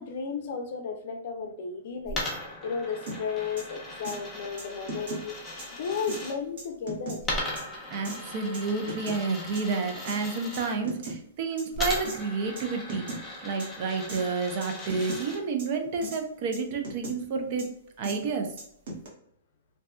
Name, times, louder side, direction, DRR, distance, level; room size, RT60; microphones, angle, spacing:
voice 1, 0.0-2.3 2.6-5.4 5.8-7.2, left 6 dB, 55° left, 4 dB, 0.5 m, -34 dB
Coin (dropping), 2.1-6.3 7.2-10.7 11.7-15.4, left 1 dB, 10° left, 0.7 m, -38 dB
sound 1, 3.1-3.2 3.6-3.7 4.0-4.2 4.6-5.2 5.6-5.7 6.1-6.2 6.6-7.2 7.6-7.7 8.1-8.2 8.5-9.2 9.6-9.7 10.1-10.2 10.5-11.2 11.6-11.7 12.1-12.2 12.6-12.7 12.9-13.2 13.6-13.7 14.1-14.2 14.6-15.2 15.6-15.7 16.0-16.2 16.5-17.2 17.6-17.7 18.0-18.2 18.6-19.1, right 2 dB, 55° right, 1.0 m, -37 dB
voice 2, 7.9-13.1 13.4-17.7 18.0-18.5, right 4 dB, 40° right, 5 dB, 0.5 m, -30 dB
2.6 x 2.2 x 2.2 m, 0.71 s
hypercardioid pair, 155°, 0 cm